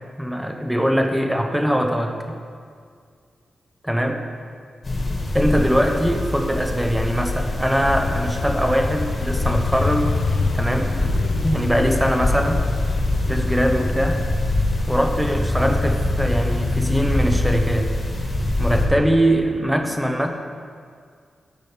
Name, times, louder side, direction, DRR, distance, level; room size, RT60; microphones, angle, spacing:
voice 1, 0.2-2.4 3.8-4.3 5.3-10.2 10.5-11.0 11.4-12.7 13.3-14.2 14.9-17.9 18.6-20.3, equal, 5° right, 4 dB, 1.0 m, -22 dB
sound 1, 4.8-18.9, left 2 dB, 45° left, 2.2 m, -24 dB
Motorcycle, 7.9-15.6, left 5 dB, 70° left, 0.6 m, -29 dB
14.0 x 5.2 x 5.0 m, 2.1 s
cardioid pair, 70°, 0 cm